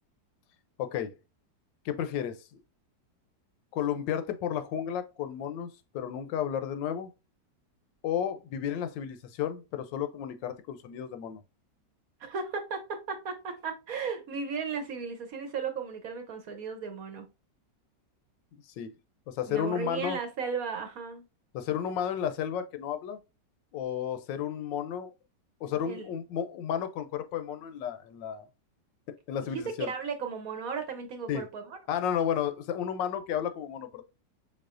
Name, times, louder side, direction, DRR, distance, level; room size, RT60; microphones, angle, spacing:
voice 1, 0.8-1.1 1.8-2.4 3.7-5.7 5.9-7.1 8.0-11.4 18.8-18.9 19.3-20.2 21.5-23.2 23.7-25.1 25.6-28.4 29.3-29.9 31.3-31.4 31.9-34.0, left 9 dB, 85° left, 1.3 m, -32 dB
voice 2, 12.2-17.3 19.5-21.2 25.9-26.1 29.5-31.8, right 5 dB, 60° right, 1.1 m, -35 dB
5.4 x 3.8 x 2.5 m
omnidirectional pair, 1.9 m